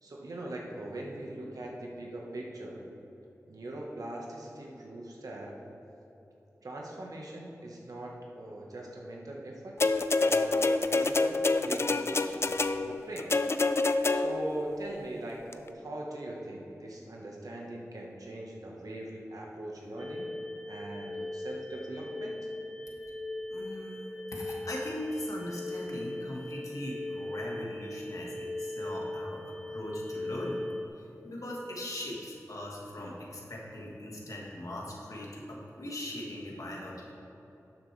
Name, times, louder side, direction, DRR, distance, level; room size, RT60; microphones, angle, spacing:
voice 1, 0.0-2.9 3.5-5.6 6.6-9.8 10.2-13.3 14.1-20.3 20.7-22.4, right 1 dB, 85° right, -2 dB, 1.4 m, -41 dB
sound 1, 9.8-14.6 15.5-15.6, left 3 dB, 45° left, 0.4 m, -27 dB
sound 2, 20.0-30.9, left 1 dB, 5° left, 0.7 m, -39 dB
voice 2, 23.5-30.6 30.9-37.1, left 1 dB, 70° left, -3 dB, 1.8 m, -40 dB
11.5 x 7.5 x 3.4 m, 3.0 s
cardioid pair, 45°, 6 cm